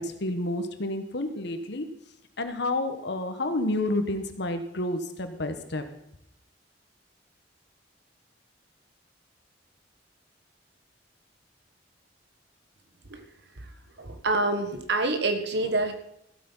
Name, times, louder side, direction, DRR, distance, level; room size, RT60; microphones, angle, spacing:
voice 1, 0.0-1.9 2.4-5.8, left 1 dB, 65° left, 8 dB, 1.4 m, -30 dB
voice 2, 14.0-15.9, right 2 dB, 65° right, 8 dB, 1.4 m, -27 dB
15.0 x 8.4 x 5.7 m, 0.76 s
head